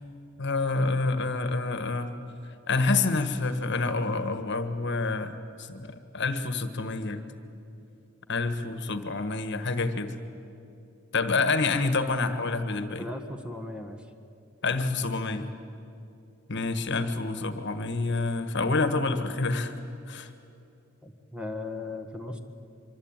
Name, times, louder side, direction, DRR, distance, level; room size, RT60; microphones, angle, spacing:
voice 1, 0.4-2.1 2.7-7.2 8.3-10.2 11.1-13.1 14.6-15.5 16.5-19.7 20.1-20.3, left 3 dB, 60° left, 9 dB, 1.5 m, -28 dB
voice 2, 13.0-14.0 21.0-22.4, left 2 dB, 5° right, 6 dB, 1.7 m, -37 dB
25.0 x 24.5 x 9.0 m, 2.6 s
head